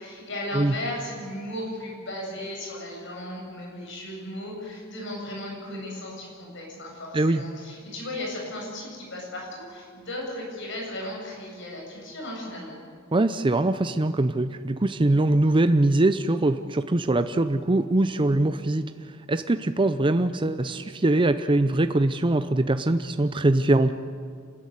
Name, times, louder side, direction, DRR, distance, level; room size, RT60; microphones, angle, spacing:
voice 1, 0.0-12.8, left 1 dB, 65° left, -1 dB, 7.9 m, -36 dB
voice 2, 13.1-18.8 19.3-23.9, right 2 dB, 25° right, 10 dB, 0.6 m, -22 dB
27.5 x 14.0 x 9.6 m, 2.1 s
head